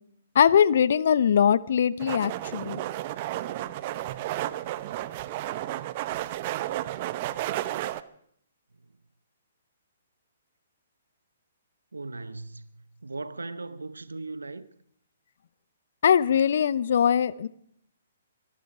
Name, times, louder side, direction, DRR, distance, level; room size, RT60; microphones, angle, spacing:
voice 1, 0.3-2.8 16.0-17.5, left 8 dB, 60° left, 0.7 m, -21 dB
sound 1, 2.0-8.0, right 14 dB, 40° right, 0.8 m, -32 dB
voice 2, 11.9-14.7, right 3 dB, 85° right, 0.9 m, -38 dB
24.5 x 12.0 x 4.9 m
figure-of-eight pair, 130°, 0 cm